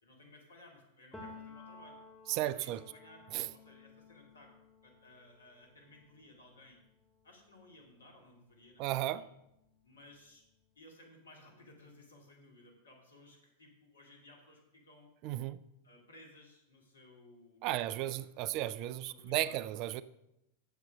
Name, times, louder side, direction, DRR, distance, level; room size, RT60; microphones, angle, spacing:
voice 1, 0.0-2.0 2.3-4.5 4.8-6.8 7.2-9.3 9.8-10.4 10.8-15.1 15.8-19.6, left 1 dB, 70° left, 2.2 m, -59 dB
Piano, 1.1-8.7 9.1-10.6, left 3 dB, 10° left, 1.8 m, -56 dB
voice 2, 2.3-2.8 3.3-3.5 8.8-9.2 15.2-15.6 17.6-20.0, right 14 dB, 40° right, 0.3 m, -34 dB
8.1 x 7.3 x 5.1 m
figure-of-eight pair, 90°, 0 cm